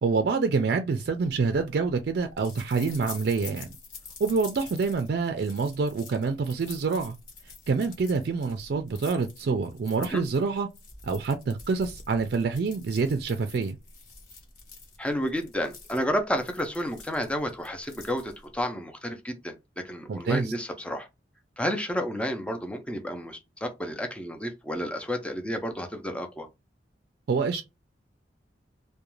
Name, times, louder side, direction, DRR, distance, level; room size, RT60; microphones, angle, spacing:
voice 1, 0.0-3.7 4.2-7.2 7.7-10.7 11.0-13.8 20.1-20.5 27.3-27.6, right 4 dB, 60° right, 0.4 m, -26 dB
sound 1, 1.2-18.6, left 4 dB, 50° left, 1.1 m, -47 dB
voice 2, 15.0-21.1 21.6-26.5, equal, 5° left, 0.5 m, -31 dB
2.4 x 2.2 x 3.0 m
head